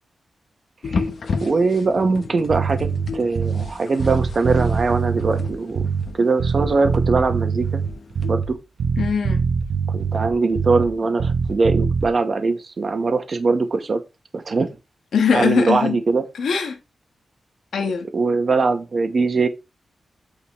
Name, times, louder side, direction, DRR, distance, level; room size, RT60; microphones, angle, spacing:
sound 1, 0.8-8.3, left 4 dB, 55° left, 0.7 m, -33 dB
voice 1, 1.4-2.9 3.1-5.9 6.2-7.7 8.3-8.6 9.9-14.0 14.3-14.7 15.3-16.2 18.1-19.5, right 4 dB, 40° right, 1.1 m, -21 dB
Bass guitar, 2.5-3.7 4.0-6.1 6.4-8.5 8.8-10.9 11.2-12.1, right 6 dB, 65° right, 0.9 m, -23 dB
voice 2, 9.0-9.4 15.1-16.0 16.3-16.8 17.7-18.1, left 6 dB, 85° left, 1.2 m, -21 dB
8.5 x 3.9 x 3.1 m
wide cardioid pair, 140°, 0 cm